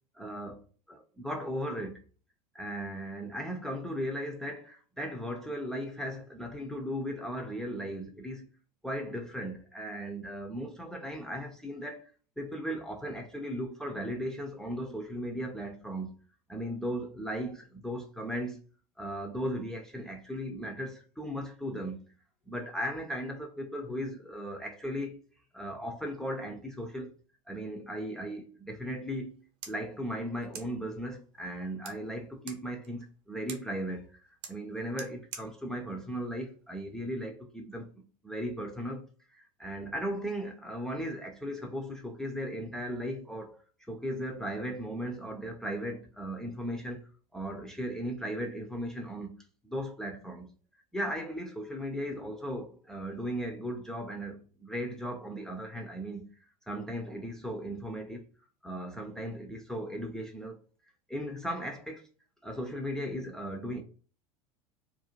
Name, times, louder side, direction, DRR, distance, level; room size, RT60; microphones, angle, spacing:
voice 1, 0.1-0.6 0.9-2.0 2.5-8.5 8.8-12.1 12.4-16.1 16.5-18.6 19.0-22.0 22.5-25.2 25.5-27.1 27.5-29.4 29.7-34.1 34.5-39.1 39.3-43.6 43.9-49.3 49.6-50.5 50.9-56.2 56.7-58.3 58.6-60.7 61.1-62.0 62.4-63.8, equal, 5° left, 0.4 m, -37 dB
sound 1, 29.2-37.2, right 6 dB, 50° right, 0.7 m, -51 dB
2.4 x 2.1 x 2.9 m
figure-of-eight pair, 80°, 19 cm